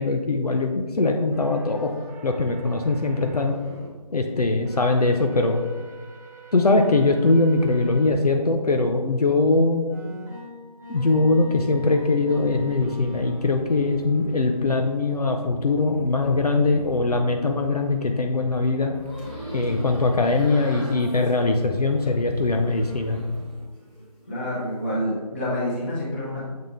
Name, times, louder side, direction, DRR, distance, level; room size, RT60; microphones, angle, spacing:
voice 1, 0.0-1.9 2.2-3.6 4.1-5.6 6.5-9.8 10.9-18.9 19.5-23.2, left 3 dB, 65° left, 3 dB, 0.7 m, -21 dB
sound 1, 1.3-3.9 4.6-8.1 8.6-8.7 9.9-21.1, equal, 25° right, 1.2 m, -45 dB
sound 2, 11.6-23.7, right 1 dB, 70° right, 0.8 m, -42 dB
sound 3, 19.0-23.4 23.7-24.5, equal, ahead, 1.5 m, -42 dB
voice 2, 24.3-26.5, equal, 15° left, -8 dB, 1.3 m, -27 dB
7.3 x 3.7 x 3.7 m, 1.3 s
figure-of-eight pair, 165°, 21 cm